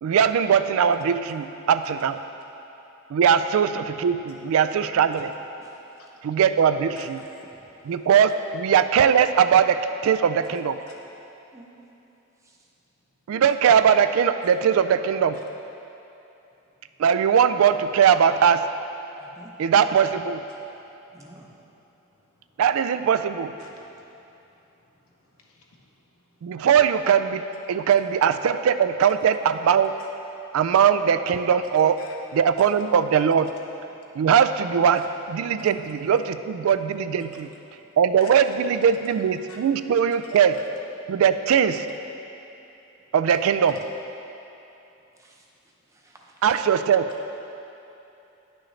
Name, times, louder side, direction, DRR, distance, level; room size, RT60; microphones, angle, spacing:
voice 1, 0.0-2.2 3.1-5.3 6.2-7.2 7.8-10.8 13.3-15.4 17.0-18.7 19.6-20.4 22.6-23.5 26.4-30.0 30.5-32.0 32.3-33.5 34.2-37.5 38.0-40.6 41.1-41.9 43.1-43.8 46.4-47.1, right 7 dB, 75° right, 11 dB, 0.3 m, -20 dB
voice 2, 19.2-19.5 21.1-21.5 45.2-45.3 46.0-46.1, right 1 dB, 15° right, -1 dB, 0.7 m, -48 dB
voice 3, 23.6-24.5 25.2-25.9 30.0-30.1 32.0-32.1 33.9-34.2 37.3-37.4 37.7-37.9 38.2-38.3 39.5-39.6, left 5 dB, 85° left, -1 dB, 1.0 m, -51 dB
10.0 x 6.3 x 3.2 m, 2.9 s
head